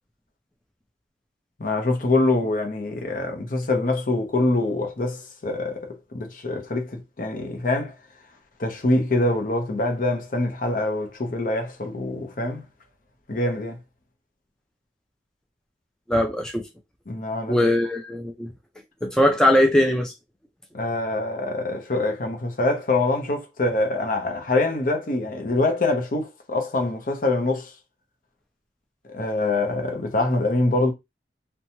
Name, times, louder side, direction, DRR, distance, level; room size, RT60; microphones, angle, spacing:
voice 1, 1.6-7.9 8.6-12.6 13.3-13.8 17.1-17.7 20.7-27.7 29.1-30.9, left 2 dB, 50° left, 0.7 m, -24 dB
voice 2, 16.1-16.6 17.5-18.5 19.0-20.1, left 1 dB, 5° left, 0.4 m, -20 dB
2.9 x 2.2 x 2.7 m
head